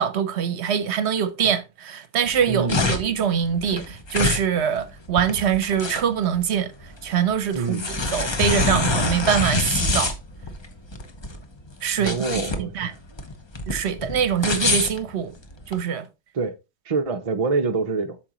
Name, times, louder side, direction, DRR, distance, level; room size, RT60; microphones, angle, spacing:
voice 1, 0.0-6.7 7.0-7.9 8.1-10.1 11.8-12.9 13.7-15.3 15.7-16.1, right 8 dB, 70° right, 1.0 m, -24 dB
sound 1, 2.3-15.8, left 2 dB, 25° left, 0.8 m, -26 dB
voice 2, 2.5-2.9 7.5-7.9 12.0-13.0 16.3-16.6 16.9-18.2, right 4 dB, 35° right, 0.7 m, -26 dB
8.6 x 6.5 x 2.9 m
omnidirectional pair, 1.2 m